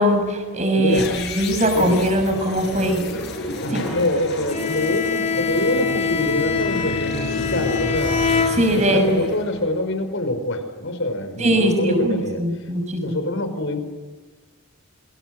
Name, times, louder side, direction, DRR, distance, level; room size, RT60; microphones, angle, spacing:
voice 1, 0.0-3.0 3.8-3.9 8.6-9.2 11.4-13.2, equal, 30° right, 5 dB, 6.7 m, -20 dB
voice 2, 0.7-1.1 1.7-2.1 3.6-8.2 8.7-12.4 13.0-13.8, left 1 dB, 65° left, 8 dB, 5.0 m, -25 dB
sound 1, 0.8-10.1, left 1 dB, 50° left, 7.0 m, -31 dB
Bowed string instrument, 4.5-9.1, left 6 dB, 35° left, 3.5 m, -24 dB
28.0 x 25.5 x 7.8 m, 1.4 s
head